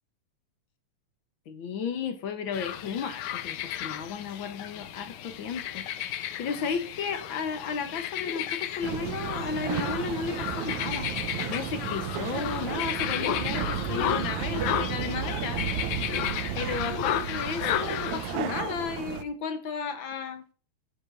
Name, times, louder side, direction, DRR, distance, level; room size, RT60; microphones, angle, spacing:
voice 1, 1.5-11.1 11.5-15.6 16.5-20.4, left 6 dB, 65° left, 1.2 m, -34 dB
sound 1, 2.5-18.4, left 11 dB, 80° left, 2.2 m, -33 dB
sound 2, 8.8-19.2, right 9 dB, 85° right, 2.2 m, -33 dB
16.5 x 7.7 x 2.5 m
omnidirectional pair, 3.3 m